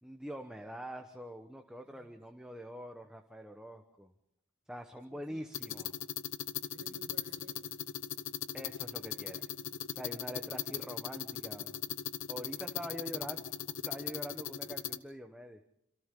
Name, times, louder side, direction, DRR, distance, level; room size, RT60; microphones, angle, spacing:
voice 1, 0.0-4.1 4.7-5.9 8.5-9.4 9.9-11.7 12.3-13.4 13.8-15.6, equal, 5° right, 1.1 m, -44 dB
voice 2, 1.8-2.3 5.1-5.5 6.7-7.9, right 1 dB, 75° right, 2.1 m, -57 dB
sound 1, 5.5-15.0, left 9 dB, 90° left, 1.0 m, -39 dB
27.5 x 27.0 x 3.8 m
head